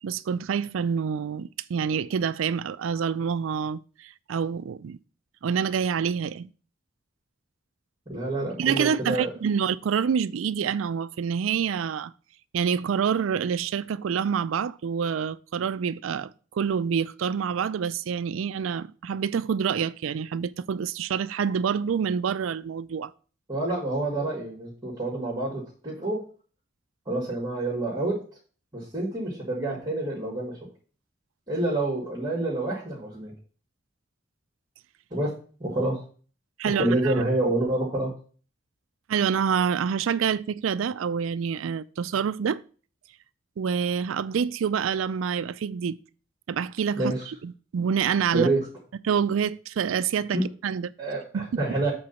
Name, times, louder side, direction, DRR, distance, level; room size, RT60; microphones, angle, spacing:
voice 1, 0.0-5.0 5.4-6.5 8.6-12.1 12.5-23.1 36.6-37.1 39.1-42.6 43.6-46.0 46.5-48.5 49.0-50.9 51.3-51.5, right 7 dB, 85° right, 0.4 m, -27 dB
voice 2, 8.1-9.3 23.5-26.2 27.1-28.1 28.7-30.6 31.5-33.3 35.1-35.3 35.6-36.0 36.8-38.1 47.0-47.2 48.3-48.6 50.3-50.4 51.0-51.9, right 2 dB, 20° right, 2.1 m, -27 dB
7.9 x 3.9 x 5.6 m
head